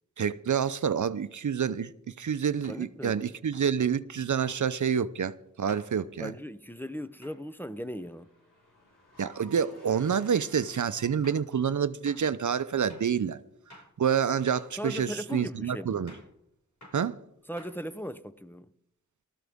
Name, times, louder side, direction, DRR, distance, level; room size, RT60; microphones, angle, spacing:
voice 1, 0.2-6.3 9.2-13.4 14.0-16.1 16.9-17.2, right 7 dB, 70° right, 0.6 m, -28 dB
sound 1, 1.6-1.7 2.6-2.9 3.5-3.8 4.5-4.7 5.7-5.9 7.2-7.4 10.5-10.6 11.2-11.5 12.1-12.3 12.9-13.1 13.7-14.0 14.5-14.8 15.3-15.5 16.1-16.3 16.8-17.1 17.6-18.1, left 1 dB, 60° left, 6.0 m, -52 dB
voice 2, 2.7-3.4 6.2-8.3 14.8-16.0 17.5-18.7, equal, 5° left, 0.6 m, -38 dB
Car / Engine, 6.5-11.5, left 1 dB, 90° left, 4.3 m, -58 dB
19.0 x 13.5 x 3.5 m
wide cardioid pair, 45°, 31 cm